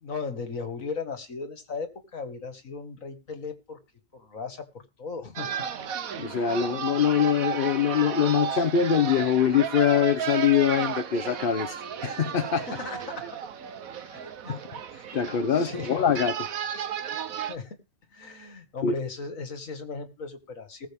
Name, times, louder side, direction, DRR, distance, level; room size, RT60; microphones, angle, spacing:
voice 1, 0.0-3.8 4.1-5.5 12.6-13.4 14.2-14.6 15.5-16.0 16.8-16.9 17.5-17.8 18.1-20.9, left 4 dB, 75° left, 2.3 m, -37 dB
sound 1, 5.4-17.6, right 8 dB, 85° right, 1.4 m, -33 dB
voice 2, 6.2-12.7 14.5-14.6 14.9-16.4 18.8-18.9, left 8 dB, 50° left, 0.8 m, -24 dB
19.5 x 7.6 x 3.6 m
omnidirectional pair, 1.4 m